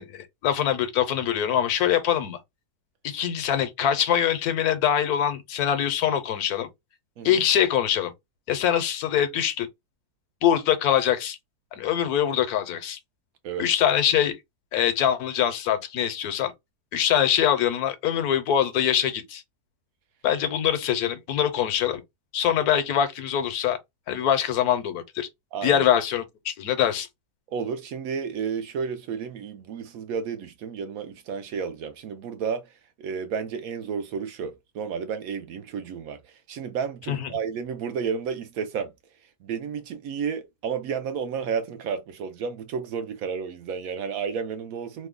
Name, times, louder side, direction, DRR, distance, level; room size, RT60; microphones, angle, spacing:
voice 1, 0.0-2.4 3.0-6.7 7.2-8.1 8.5-9.7 10.4-11.4 11.7-13.0 13.6-14.4 14.7-16.5 16.9-19.4 20.2-22.0 22.3-23.8 24.1-25.3 25.6-27.1 37.1-37.3, left 10 dB, 75° left, 1.1 m, -23 dB
voice 2, 25.5-25.8 27.5-38.9 39.4-45.1, right 6 dB, 70° right, 0.9 m, -32 dB
3.0 x 2.1 x 3.5 m
omnidirectional pair, 1.7 m